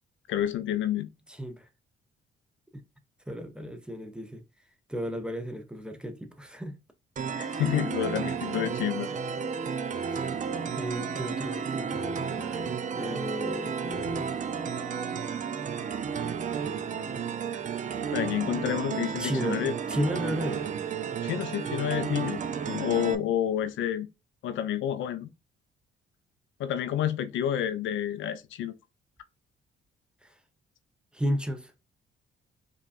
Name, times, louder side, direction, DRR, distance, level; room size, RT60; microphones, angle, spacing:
voice 1, 0.3-1.1 7.3-9.1 18.1-19.7 21.2-22.4 22.7-24.1 24.4-25.3 26.6-28.7, left 10 dB, 75° left, 0.5 m, -29 dB
voice 2, 1.3-1.7 2.7-2.8 3.3-4.4 4.9-6.8 7.5-7.6 10.0-10.3 10.7-14.3 19.2-19.6 19.9-20.6 30.2-30.3 31.1-31.7, equal, 5° right, 0.7 m, -34 dB
sound 1, 7.2-23.2, right 6 dB, 40° right, 0.5 m, -32 dB
5.0 x 2.4 x 2.4 m
cardioid pair, 90°, 20 cm